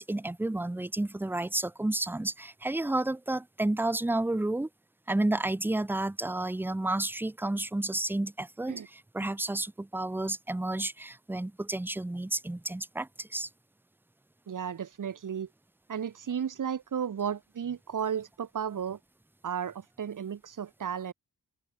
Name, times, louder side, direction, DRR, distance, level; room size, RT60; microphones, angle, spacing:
voice 1, 0.0-4.7 5.1-13.5, right 2 dB, 5° right, 0.3 m, -31 dB
voice 2, 14.5-15.5 15.9-19.0 19.4-21.1, right 8 dB, 55° right, 0.6 m, -34 dB
wide cardioid pair, 70°, 40 cm